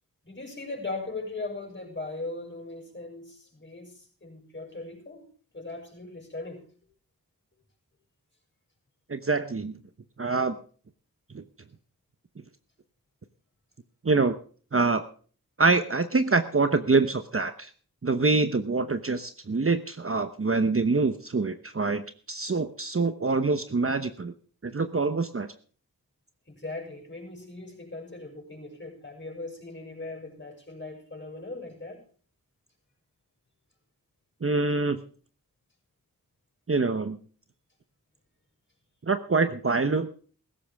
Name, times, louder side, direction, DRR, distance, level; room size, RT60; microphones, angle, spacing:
voice 1, 0.2-5.3 5.5-6.6 26.5-32.0, left 2 dB, 30° left, 1 dB, 6.4 m, -39 dB
voice 2, 9.1-9.8 10.2-10.5 11.3-11.4 14.0-14.3 14.7-15.0 15.6-17.7 18.0-22.0 22.3-24.3 24.6-25.5 34.4-35.0 36.7-37.2 39.1-40.1, right 3 dB, 35° right, 10 dB, 1.0 m, -25 dB
17.0 x 14.5 x 3.5 m, 0.43 s
wide cardioid pair, 65°, 36 cm